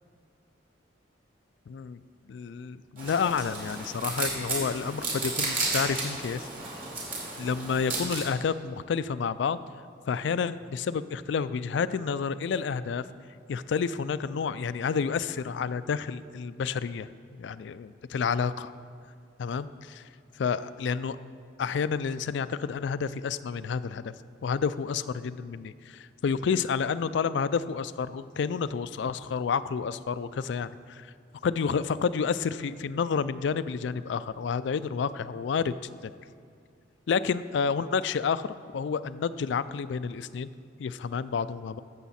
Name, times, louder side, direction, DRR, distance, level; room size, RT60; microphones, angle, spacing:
voice 1, 1.7-2.0 2.3-6.5 7.4-9.6 10.1-13.0 13.5-17.1 17.4-18.7 19.4-20.0 20.4-21.2 21.6-24.1 24.4-31.1 31.4-35.8 36.0-36.1 37.1-40.5 40.8-41.8, left 6 dB, 70° left, 15 dB, 0.3 m, -30 dB
sound 1, 3.0-8.2, right 3 dB, 50° right, 3.1 m, -33 dB
14.0 x 7.2 x 4.2 m, 2.2 s
head